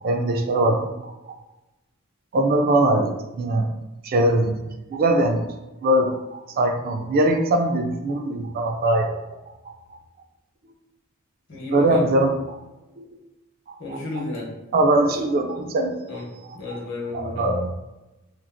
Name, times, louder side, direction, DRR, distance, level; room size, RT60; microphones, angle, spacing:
voice 1, 0.0-1.3 2.3-3.1 3.4-3.8 4.0-4.6 4.9-5.5 5.8-9.2 11.7-12.6 13.0-13.1 13.7-14.0 14.7-15.9 17.1-17.7, right 1 dB, 45° right, 4 dB, 0.3 m, -21 dB
voice 2, 11.5-12.0 13.8-14.5 16.1-16.2 16.5-17.5, left 2 dB, 60° left, -3 dB, 0.9 m, -32 dB
2.9 x 2.3 x 2.5 m, 1.0 s
head